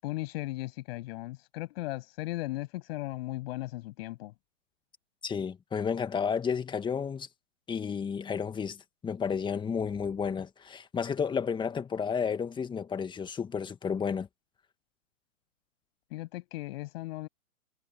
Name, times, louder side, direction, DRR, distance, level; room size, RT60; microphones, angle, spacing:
voice 1, 0.0-4.3 16.1-17.3, left 19 dB, 45° left, 7.9 m, -37 dB
voice 2, 5.2-7.3 7.7-14.3, left 6 dB, 10° left, 2.0 m, -32 dB
hypercardioid pair, 130°, 42 cm